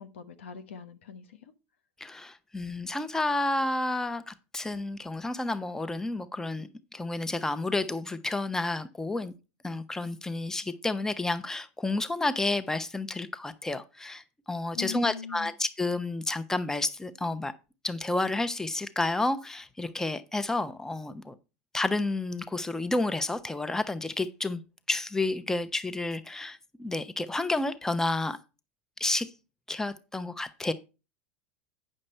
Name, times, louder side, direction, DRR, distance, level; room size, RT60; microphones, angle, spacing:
voice 1, 0.0-1.5 14.8-15.5, left 8 dB, 90° left, 1.0 m, -41 dB
voice 2, 2.0-9.3 9.6-17.5 17.8-21.4 21.7-24.6 24.9-28.4 29.0-29.3 29.7-30.7, left 2 dB, 10° left, 0.7 m, -30 dB
8.7 x 6.4 x 4.3 m
hypercardioid pair, 105°, 6 cm